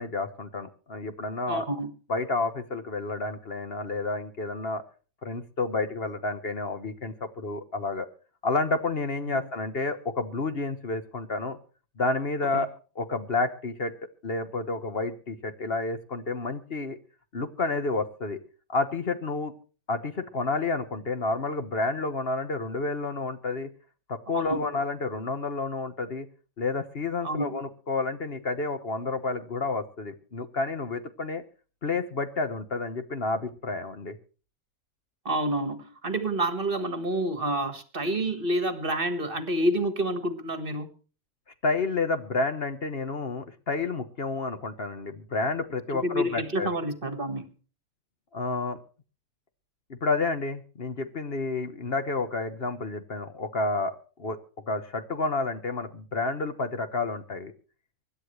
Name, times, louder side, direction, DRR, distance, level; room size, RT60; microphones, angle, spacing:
voice 1, 0.0-1.7 2.1-4.8 5.2-8.1 8.4-11.6 12.0-12.7 12.9-13.9 14.2-17.0 17.3-18.4 18.7-19.5 19.9-23.7 24.1-26.3 26.6-31.4 31.8-34.2 41.6-46.7 48.3-48.8 49.9-54.4 54.7-57.5, left 3 dB, 45° left, 9 dB, 1.3 m, -30 dB
voice 2, 1.5-1.9 9.3-9.4 12.5-12.7 24.3-24.6 27.2-27.6 35.3-40.9 45.9-47.5, right 1 dB, 40° right, 10 dB, 1.7 m, -28 dB
25.0 x 11.5 x 3.2 m, 0.38 s
omnidirectional pair, 1.4 m